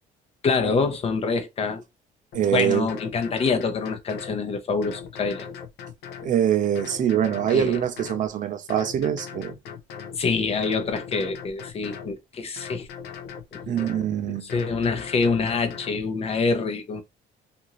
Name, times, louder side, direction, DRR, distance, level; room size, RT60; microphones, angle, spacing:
voice 1, 0.4-1.8 2.5-5.5 7.5-7.8 10.2-12.9 13.7-13.9 14.4-17.0, left 4 dB, 35° left, 0.6 m, -26 dB
sound 1, 2.3-2.5 2.9-4.4 4.8-6.3 6.8-8.3 8.7-10.2 10.6-12.1 12.6-14.1 14.5-16.0, left 7 dB, 80° left, 0.6 m, -39 dB
voice 2, 2.3-2.9 6.2-9.5 13.7-14.5, right 10 dB, 50° right, 0.5 m, -24 dB
2.7 x 2.5 x 2.9 m
cardioid pair, 110°, 17 cm